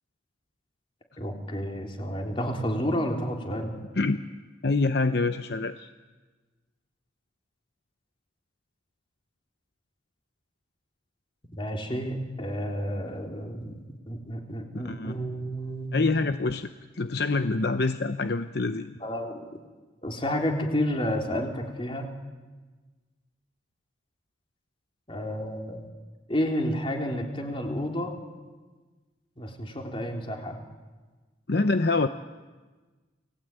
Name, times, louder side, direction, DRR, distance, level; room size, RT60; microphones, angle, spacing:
voice 1, 1.2-3.8 11.5-16.2 19.0-19.5 20.0-22.1 25.1-25.9 26.3-28.1 29.4-30.6, equal, 30° left, 2 dB, 3.7 m, -30 dB
voice 2, 4.6-5.9 14.7-15.1 15.9-16.7 17.0-18.9 31.5-32.1, left 3 dB, 60° left, 9 dB, 0.8 m, -26 dB
29.5 x 21.0 x 9.1 m, 1.3 s
head